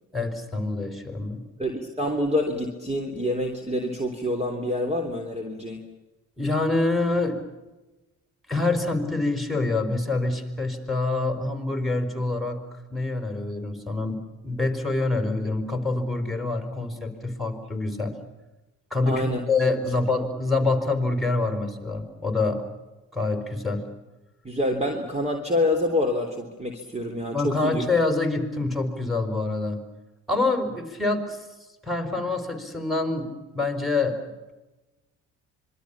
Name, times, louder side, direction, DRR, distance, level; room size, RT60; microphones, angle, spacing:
voice 1, 0.1-1.4 6.4-7.4 8.5-18.2 18.9-22.6 23.1-23.9 27.3-29.8 30.3-31.4 31.8-34.5, left 3 dB, ahead, 6 dB, 5.4 m, -26 dB
voice 2, 1.6-5.8 19.0-19.4 19.7-19.8 24.4-27.8, left 1 dB, 15° right, 3 dB, 3.5 m, -27 dB
26.0 x 22.5 x 7.3 m, 1.1 s
hypercardioid pair, 50°, 40 cm